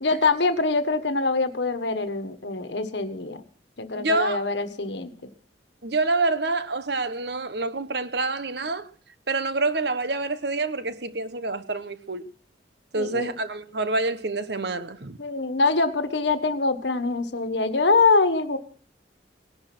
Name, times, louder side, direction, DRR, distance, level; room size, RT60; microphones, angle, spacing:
voice 1, 0.0-3.4 3.8-5.1 12.9-13.3 15.2-18.6, left 3 dB, 70° left, 1.4 m, -24 dB
voice 2, 3.9-4.5 5.8-8.9 9.3-12.3 12.9-15.2, right 3 dB, 60° right, 1.1 m, -27 dB
18.5 x 11.5 x 6.1 m
head